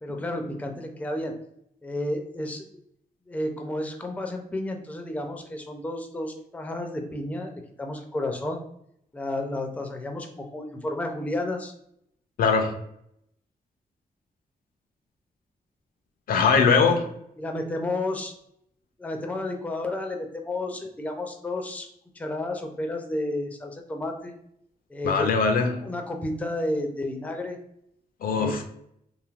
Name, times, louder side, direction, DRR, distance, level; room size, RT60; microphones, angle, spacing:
voice 1, 0.0-1.3 1.8-2.6 3.3-8.6 9.1-11.7 17.4-18.3 19.0-21.9 22.2-24.3 24.9-25.3 25.8-27.6 28.3-28.6, left 1 dB, 10° left, 4 dB, 0.4 m, -31 dB
voice 2, 12.4-12.7 16.3-17.1 25.0-25.8 28.2-28.6, left 5 dB, 75° left, 5 dB, 0.5 m, -21 dB
3.2 x 2.6 x 2.3 m, 0.74 s
wide cardioid pair, 125°, 15 cm